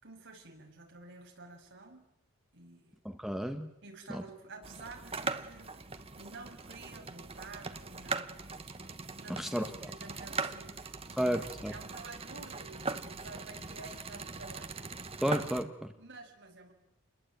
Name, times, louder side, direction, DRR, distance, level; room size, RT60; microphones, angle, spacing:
voice 1, 0.0-2.1 2.5-3.0 3.8-8.5 9.2-14.7 15.7-16.7, right 3 dB, 55° right, 2 dB, 6.8 m, -51 dB
voice 2, 3.0-3.7 4.1-4.2 9.4-9.6 11.2-11.7 15.2-15.9, equal, ahead, 6 dB, 1.3 m, -32 dB
sound 1, 4.6-15.6, right 4 dB, 25° right, 1.3 m, -40 dB
29.5 x 21.5 x 9.2 m, 0.90 s
head